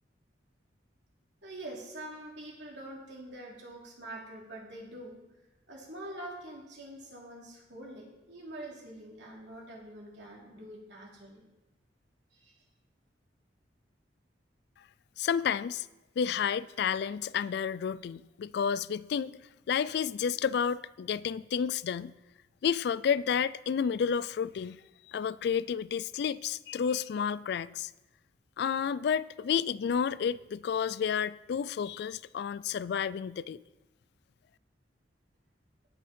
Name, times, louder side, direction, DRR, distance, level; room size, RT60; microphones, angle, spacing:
voice 1, 1.4-5.2 5.7-11.4 12.3-12.5, right 1 dB, 70° right, 3.1 m, -45 dB
voice 2, 15.2-15.9 16.2-19.4 19.7-22.1 22.6-24.8 25.1-27.9 28.6-33.6, left 7 dB, 60° left, 0.3 m, -31 dB
17.5 x 6.3 x 4.3 m
head